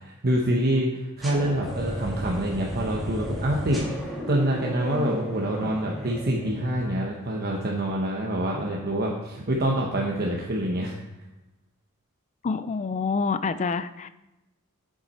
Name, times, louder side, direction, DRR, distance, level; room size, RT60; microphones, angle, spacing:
voice 1, 0.0-10.9, right 1 dB, 45° right, -1 dB, 1.0 m, -26 dB
sound 1, 1.2-7.2, equal, ahead, 2.0 m, -34 dB
voice 2, 8.9-9.2 12.4-14.1, left 4 dB, 30° left, 13 dB, 0.4 m, -28 dB
8.8 x 7.4 x 4.3 m, 0.98 s
head